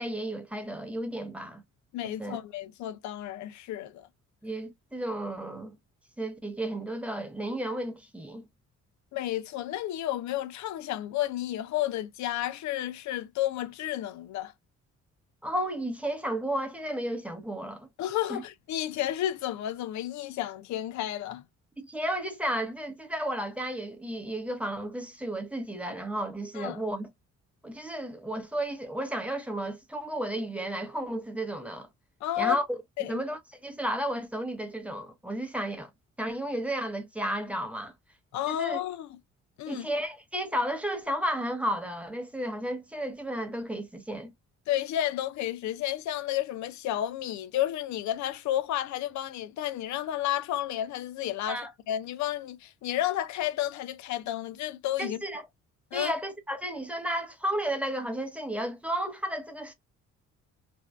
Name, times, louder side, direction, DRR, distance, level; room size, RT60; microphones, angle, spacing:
voice 1, 0.0-1.6 2.2-2.4 4.4-5.7 6.2-8.4 15.4-17.9 18.3-18.4 21.8-27.1 27.6-31.9 32.4-32.8 33.1-35.9 36.2-37.9 38.5-38.8 39.7-44.3 51.5-51.7 55.0-55.4 55.9-59.7, right 1 dB, 5° right, 0.8 m, -33 dB
voice 2, 1.9-4.1 9.1-14.5 18.0-21.4 26.5-26.8 32.2-32.6 33.0-33.2 38.3-39.1 39.6-39.9 44.7-55.2 55.9-56.1, left 12 dB, 70° left, 0.5 m, -31 dB
2.6 x 2.2 x 3.3 m
cardioid pair, 90°, 30 cm